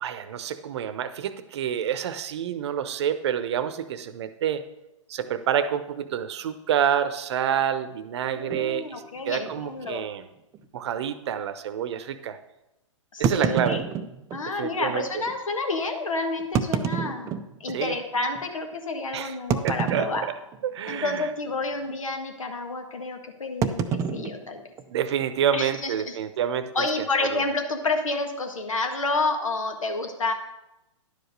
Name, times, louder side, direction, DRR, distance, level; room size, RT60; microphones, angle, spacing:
voice 1, 0.0-4.6 5.1-10.2 10.7-12.4 13.2-13.8 14.6-15.1 17.7-17.9 19.1-19.3 19.6-20.1 20.6-21.3 24.9-26.9 27.2-27.4, right 9 dB, 55° right, 12 dB, 0.8 m, -28 dB
voice 2, 8.3-10.1 13.1-13.8 14.3-17.3 17.6-20.3 20.9-24.6 25.5-26.2 26.7-30.3, left 3 dB, 85° left, 5 dB, 1.7 m, -29 dB
sound 1, 8.5-8.7 9.4-9.5 9.8-9.9 10.5-10.6 13.2-14.4 15.3-15.4 16.4-17.8 18.3-18.4 19.5-20.6 20.9-21.2 21.5-21.8 23.6-25.2, right 7 dB, 20° right, 0.5 m, -28 dB
11.0 x 5.0 x 6.6 m, 0.93 s
hypercardioid pair, 130°, 17 cm